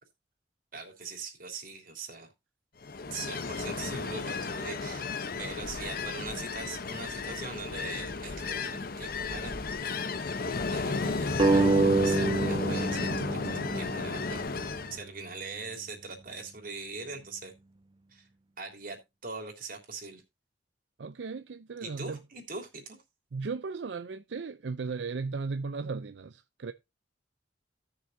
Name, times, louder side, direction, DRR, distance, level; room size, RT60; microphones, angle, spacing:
voice 1, 0.7-2.3 3.1-5.1 5.4-9.6 10.7-13.4 13.7-14.5 14.9-17.5 18.1-18.2 18.6-20.2 21.8-23.0, right 4 dB, 50° right, 3.2 m, -41 dB
Ocean, 2.8-15.0, left 4 dB, 55° left, 0.9 m, -33 dB
sound 1, 11.4-14.6, right 3 dB, 25° right, 0.6 m, -26 dB
voice 2, 21.0-22.2 23.3-26.7, right 4 dB, 75° right, 0.5 m, -36 dB
17.0 x 6.8 x 2.6 m
head